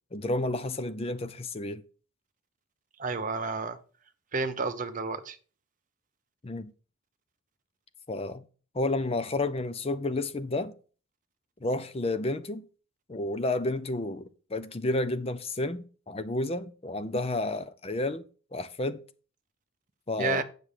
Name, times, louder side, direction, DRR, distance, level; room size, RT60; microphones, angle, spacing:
voice 1, 0.1-1.8 6.4-6.7 8.1-8.4 8.7-10.7 11.6-12.6 13.1-18.2 18.5-19.0 20.1-20.4, left 2 dB, 25° left, 0.5 m, -31 dB
voice 2, 3.0-3.8 4.3-5.4 20.2-20.4, right 4 dB, 35° right, 0.8 m, -30 dB
7.8 x 6.2 x 5.0 m
head